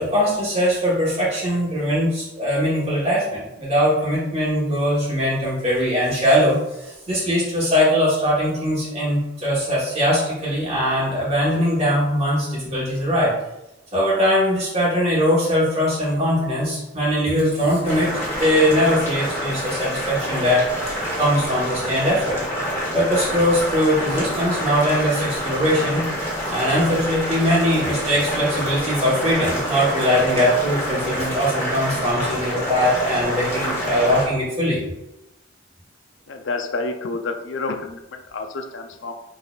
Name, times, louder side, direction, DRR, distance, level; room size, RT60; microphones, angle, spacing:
voice 1, 0.0-13.3 13.9-22.4 22.9-26.0 26.5-34.8, equal, 35° right, -7 dB, 1.3 m, -21 dB
Boiling, 17.8-34.3, equal, 15° left, 1.6 m, -27 dB
voice 2, 36.3-39.1, left 3 dB, 80° left, 5 dB, 0.6 m, -29 dB
5.2 x 4.1 x 2.4 m, 0.91 s
head